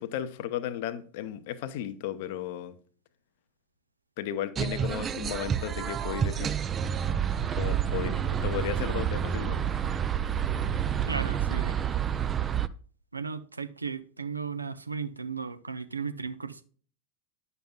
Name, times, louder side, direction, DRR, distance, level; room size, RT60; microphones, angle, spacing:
voice 1, 0.0-2.8 4.2-6.5 7.6-9.6, left 10 dB, 50° left, 0.7 m, -34 dB
sound 1, 4.6-12.7, right 9 dB, 20° right, 0.4 m, -29 dB
voice 2, 11.1-11.7 13.1-16.6, right 5 dB, 80° right, 0.6 m, -35 dB
10.5 x 6.8 x 2.3 m
figure-of-eight pair, 90°, 0 cm